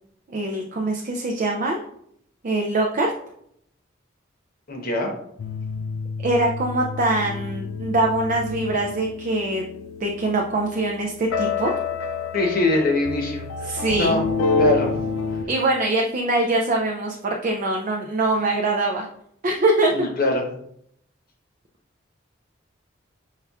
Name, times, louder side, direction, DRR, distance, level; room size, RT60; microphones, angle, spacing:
voice 1, 0.3-1.8 2.4-3.1 6.2-9.7 10.0-11.7 13.6-14.2 15.5-19.1 19.4-20.1, right 2 dB, 40° right, 1 dB, 0.4 m, -23 dB
voice 2, 4.7-5.1 12.3-14.2 14.6-14.9 19.9-20.5, left 2 dB, 45° left, 2 dB, 0.9 m, -23 dB
sound 1, 5.4-15.5, left 4 dB, 85° left, 0.4 m, -28 dB
5.5 x 3.4 x 2.3 m, 0.71 s
head